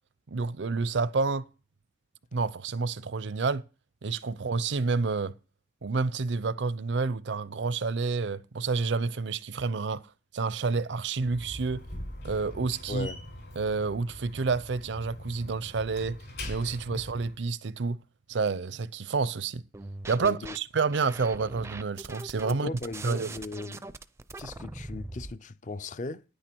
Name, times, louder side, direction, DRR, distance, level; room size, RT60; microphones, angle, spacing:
voice 1, 0.3-1.5 2.3-3.6 4.0-5.4 5.8-10.0 10.3-11.8 12.2-13.1 13.6-16.2 16.5-18.0 18.3-19.6 20.1-22.7 23.0-23.3, right 4 dB, 75° right, 0.6 m, -29 dB
Slam, 11.2-17.4, left 1 dB, 65° left, 5.7 m, -42 dB
voice 2, 12.9-13.2 16.9-17.0 20.2-20.6 22.5-23.8 24.4-26.2, left 2 dB, 40° left, 0.5 m, -37 dB
sound 1, 19.7-20.6 20.9-25.3, right 2 dB, 15° right, 0.4 m, -42 dB
9.9 x 9.2 x 4.5 m
head